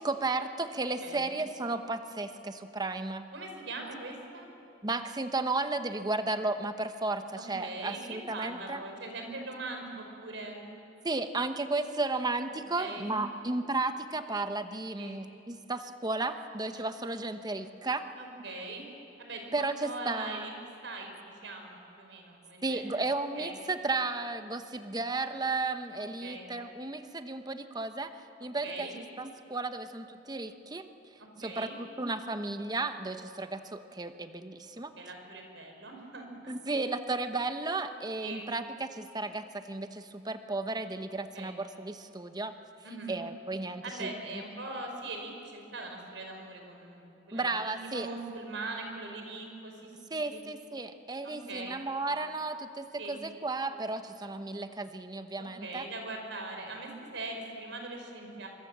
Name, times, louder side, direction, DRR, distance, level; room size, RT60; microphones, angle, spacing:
voice 1, 0.0-3.2 4.8-8.8 11.0-18.0 19.5-20.5 22.6-28.1 28.4-30.9 31.4-34.9 36.5-42.5 43.1-44.4 47.3-48.1 50.1-55.9, right 3 dB, 20° right, 8 dB, 1.0 m, -34 dB
voice 2, 1.0-1.3 3.3-4.5 7.4-10.6 12.8-13.1 15.0-15.2 18.2-18.9 19.2-20.5 20.8-23.0 23.4-23.6 26.2-26.5 28.6-29.0 31.4-31.8 35.0-36.6 38.2-38.5 41.3-41.6 42.8-43.2 43.8-50.4 51.2-51.8 53.0-53.2 55.6-58.5, right 2 dB, 85° right, 3 dB, 4.9 m, -41 dB
24.5 x 24.5 x 7.5 m, 2.8 s
head